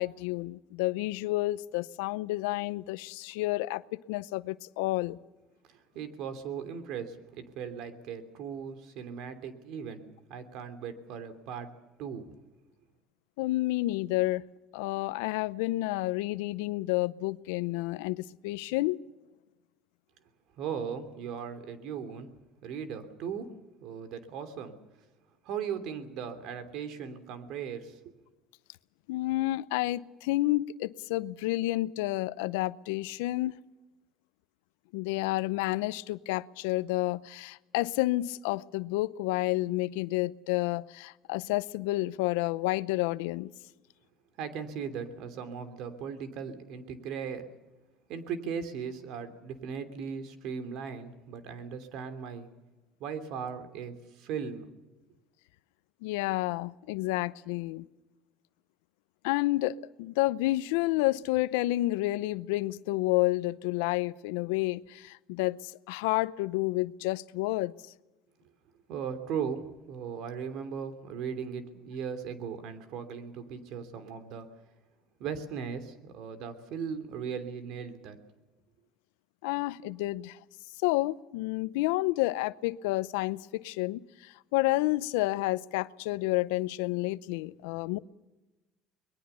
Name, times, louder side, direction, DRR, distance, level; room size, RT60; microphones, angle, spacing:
voice 1, 0.0-5.2 13.4-14.4 14.7-19.0 29.1-33.6 34.9-43.5 56.0-57.9 59.2-67.7 79.4-80.4 80.8-88.0, left 19 dB, 85° left, 0.7 m, -30 dB
voice 2, 5.7-10.0 10.3-11.7 12.0-12.3 20.6-22.3 22.6-23.5 23.8-24.8 25.4-28.0 44.4-47.5 48.1-52.5 53.0-54.7 68.9-74.5 75.2-78.2, right 7 dB, 70° right, 3.0 m, -38 dB
23.5 x 21.5 x 7.0 m
supercardioid pair, 100°, 0 cm